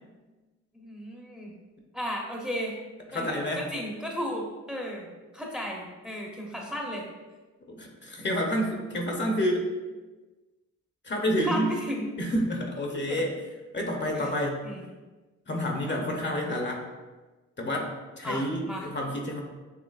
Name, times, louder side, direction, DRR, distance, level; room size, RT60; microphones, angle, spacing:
voice 1, 0.7-1.5 1.9-2.7 3.1-5.1 5.3-7.0 11.4-12.1 13.1-13.2 14.1-14.3 14.6-14.8 15.9-16.0 18.2-18.9, equal, 5° right, -1 dB, 0.9 m, -34 dB
voice 2, 3.1-3.6 7.7-9.6 11.0-11.8 12.2-13.4 13.7-14.7 15.5-16.8 17.6-19.4, equal, 35° left, 1 dB, 0.9 m, -29 dB
6.5 x 2.8 x 2.5 m, 1.2 s
supercardioid pair, 60°, 33 cm